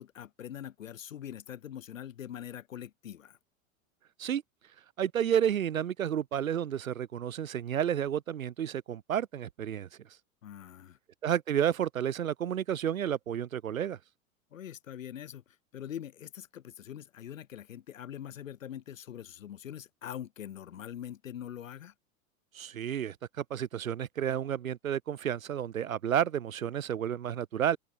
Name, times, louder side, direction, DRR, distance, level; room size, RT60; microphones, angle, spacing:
voice 1, 0.0-3.4 10.4-11.0 14.5-15.4 15.7-21.9, left 10 dB, 65° left, 1.8 m, -43 dB
voice 2, 5.0-9.9 11.2-14.0 22.5-27.8, right 9 dB, 70° right, 1.1 m, -31 dB
open air
figure-of-eight pair, 90°, 42 cm